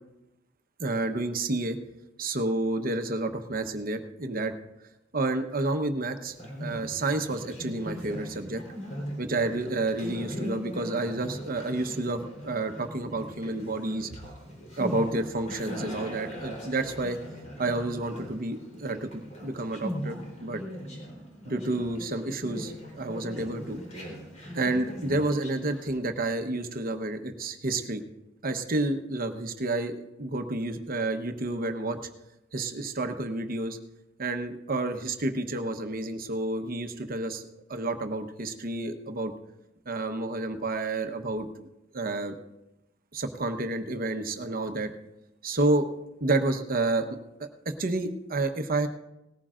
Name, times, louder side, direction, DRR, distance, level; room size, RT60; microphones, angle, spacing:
voice 1, 0.8-1.8 2.2-4.5 5.1-8.6 9.2-14.1 14.8-17.2 17.6-20.6 21.5-23.8 24.5-28.0 28.4-29.9 30.2-32.0 32.5-33.8 34.2-37.4 37.7-39.3 39.9-41.7 41.9-42.4 43.1-44.9 45.4-45.9 46.2-47.1 47.8-48.9, right 2 dB, 50° right, 7 dB, 1.0 m, -30 dB
Conversation, 6.3-26.0, equal, 40° left, 3.7 m, -40 dB
18.5 x 14.5 x 2.5 m, 0.93 s
head